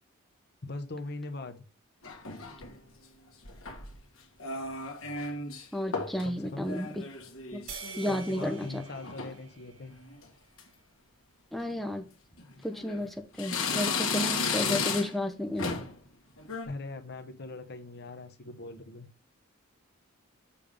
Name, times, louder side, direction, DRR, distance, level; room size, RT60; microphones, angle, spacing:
voice 1, 0.6-1.6 6.2-6.7 8.0-9.9 16.7-19.1, left 2 dB, 50° left, 8 dB, 0.9 m, -41 dB
sound 1, 2.0-2.8 3.5-4.0 4.4-5.7 5.9-6.3 6.6-8.6 8.9-9.4 9.9-10.2 10.6-10.7 11.6-11.8 12.4-13.0 13.4-15.3 15.6-16.0 16.4-16.7, left 4 dB, 65° left, 1.5 m, -34 dB
voice 2, 5.7-7.0 7.5-8.8 11.5-12.0 12.6-15.7, left 1 dB, ahead, 4 dB, 0.7 m, -33 dB
sound 2, 7.7-10.3, right 5 dB, 85° right, 1.6 m, -46 dB
7.0 x 3.5 x 5.1 m, 0.33 s
head